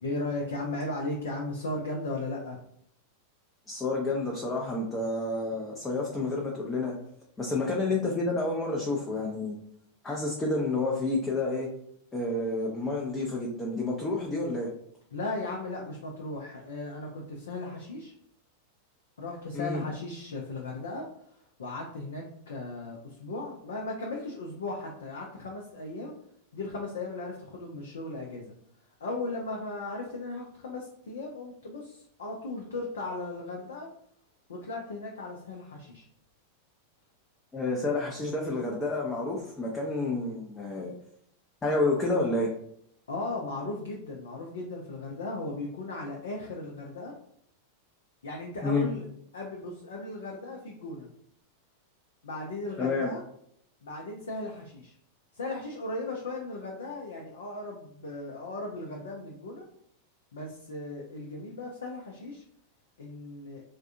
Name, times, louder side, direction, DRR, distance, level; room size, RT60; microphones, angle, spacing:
voice 1, 0.0-2.6 15.1-18.1 19.2-26.1 26.5-28.5 29.0-33.9 34.5-36.1 43.1-47.2 48.2-49.0 49.3-51.1 52.2-53.2 53.8-55.0 55.3-59.7 60.3-62.4 63.0-63.6, left 2 dB, 65° left, 0 dB, 0.5 m, -37 dB
voice 2, 3.7-6.9 7.4-9.6 10.0-11.7 12.1-14.7 19.5-19.8 37.5-40.9 41.6-42.5 48.6-48.9 52.8-53.1, left 2 dB, 15° left, -2 dB, 0.6 m, -29 dB
3.4 x 2.2 x 2.5 m, 0.69 s
figure-of-eight pair, 90°, 0 cm